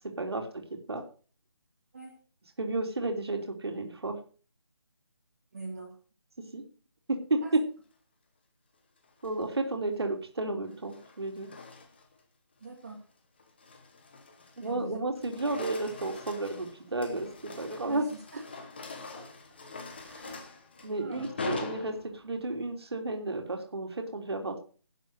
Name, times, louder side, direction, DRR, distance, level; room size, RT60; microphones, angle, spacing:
voice 1, 0.2-1.0 2.6-4.2 6.5-6.6 7.1-7.4 9.2-11.5 14.6-18.0 20.8-24.6, right 2 dB, 60° right, 3 dB, 3.2 m, -32 dB
voice 2, 5.5-6.0 7.4-7.5 12.6-13.0 14.6-15.0 17.9-18.5 19.1-19.3 20.0-20.5 20.9-21.3, right 3 dB, 30° right, 0 dB, 2.2 m, -44 dB
sound 1, 9.0-9.5 10.6-12.2 12.6-12.9 13.4-14.8 15.1-22.4, left 4 dB, 20° left, 1.3 m, -43 dB
12.0 x 7.5 x 6.6 m, 0.38 s
figure-of-eight pair, 180°, 15 cm